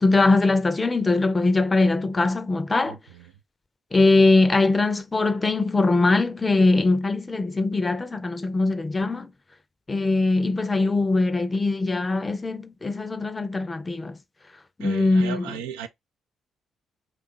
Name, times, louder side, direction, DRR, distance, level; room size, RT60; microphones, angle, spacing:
voice 1, 0.0-3.0 3.9-9.3 9.9-14.2 14.8-15.6, left 3 dB, 30° left, 0.5 m, -21 dB
voice 2, 14.8-15.9, right 9 dB, 85° right, 0.3 m, -35 dB
2.8 x 2.5 x 3.7 m
hypercardioid pair, 45°, 0 cm